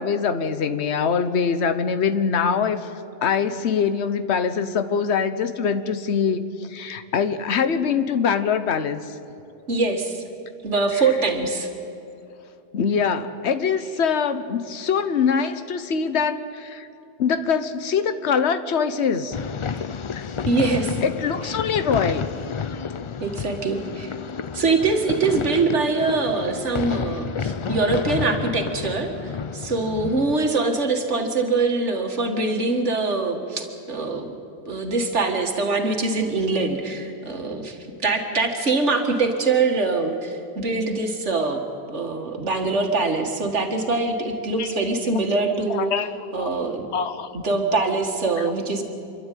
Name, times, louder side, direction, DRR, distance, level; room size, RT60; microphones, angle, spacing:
voice 1, 0.0-2.9 3.2-9.0 12.7-16.9 17.2-19.4 20.1-20.3 21.0-22.3 44.6-44.7 45.7-46.1 46.4-46.5 46.9-47.3 48.4-48.5, left 6 dB, 75° left, 11 dB, 1.2 m, -23 dB
voice 2, 9.7-10.2 10.6-11.7 19.7-19.8 20.5-21.0 21.4-21.5 23.2-24.1 24.5-34.3 34.7-41.6 41.9-45.9 46.3-46.9 47.3-48.8, right 3 dB, 90° right, 4 dB, 2.1 m, -23 dB
sound 1, 19.3-30.5, left 6 dB, 50° left, 0.3 m, -30 dB
28.0 x 12.0 x 9.2 m, 2.8 s
omnidirectional pair, 1.2 m